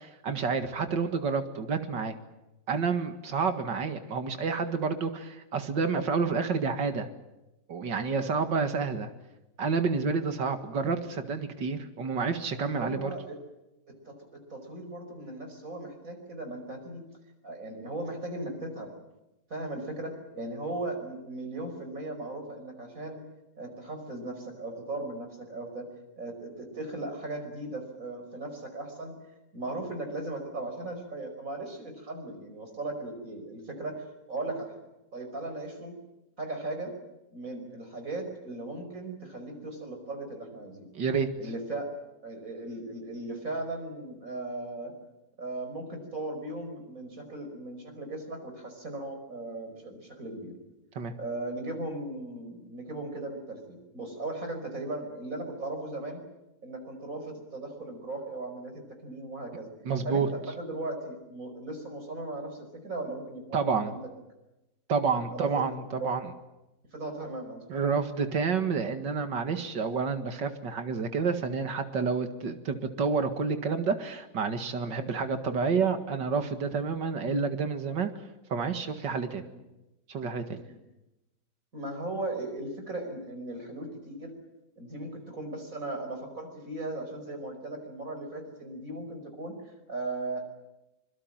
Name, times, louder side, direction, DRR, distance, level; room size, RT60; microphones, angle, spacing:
voice 1, 0.0-2.2 2.7-7.1 7.7-9.1 9.6-13.1 40.9-41.3 51.0-51.1 59.9-60.3 63.5-64.0 64.9-66.2 67.7-78.1 78.5-79.4 80.1-80.6, right 5 dB, 85° right, 8 dB, 2.6 m, -29 dB
voice 2, 12.6-13.4 13.9-17.0 17.4-18.9 19.5-23.2 23.6-25.9 26.2-29.1 29.5-34.8 35.1-35.9 36.4-36.9 37.3-40.9 41.4-41.9 42.2-44.9 45.4-50.5 51.2-56.2 56.6-59.7 60.1-64.0 65.3-65.7 66.0-66.1 66.9-67.8 74.9-75.1 80.6-80.8 81.7-84.3 84.8-90.4, right 2 dB, 50° right, 5 dB, 5.6 m, -37 dB
25.0 x 23.0 x 7.6 m, 0.97 s
omnidirectional pair, 1.9 m